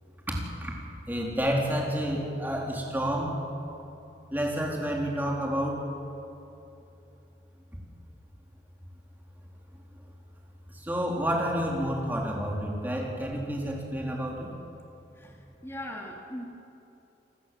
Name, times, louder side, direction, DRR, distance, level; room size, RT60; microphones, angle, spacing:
voice 1, 0.3-0.7 1.1-3.4 4.3-5.8 10.7-14.5, equal, 10° right, -2 dB, 4.0 m, -29 dB
voice 2, 15.2-16.4, left 1 dB, 15° left, 0 dB, 2.4 m, -40 dB
29.5 x 19.5 x 7.7 m, 2.9 s
head